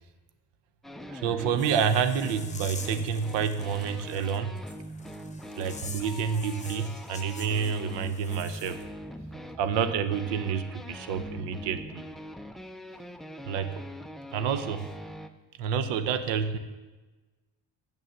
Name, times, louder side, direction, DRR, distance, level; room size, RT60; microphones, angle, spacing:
sound 1, 0.8-15.3, equal, ahead, 0.3 m, -43 dB
voice 1, 1.1-4.6 5.6-8.8 9.6-12.0 13.4-13.8 14.3-14.9 15.6-16.6, right 7 dB, 85° right, 11 dB, 0.8 m, -28 dB
sound 2, 1.6-8.8, left 4 dB, 15° left, 0.8 m, -46 dB
7.2 x 6.5 x 7.0 m, 1.2 s
cardioid pair, 105°, 42 cm